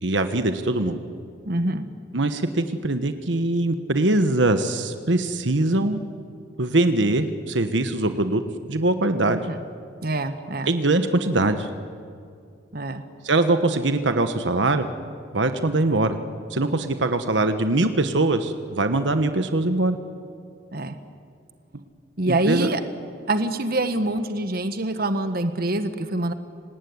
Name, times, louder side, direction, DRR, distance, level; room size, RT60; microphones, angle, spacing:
voice 1, 0.0-1.0 2.1-6.0 6.6-8.4 8.7-9.4 10.7-11.7 13.2-14.9 15.3-16.2 16.5-20.0 22.3-22.7, right 2 dB, 75° right, 8 dB, 1.3 m, -22 dB
voice 2, 1.4-1.9 9.3-9.6 10.0-10.7 12.7-13.0 20.7-21.0 22.2-22.8 23.3-26.3, right 2 dB, 55° right, 9 dB, 1.4 m, -25 dB
26.5 x 19.0 x 9.6 m, 2.3 s
head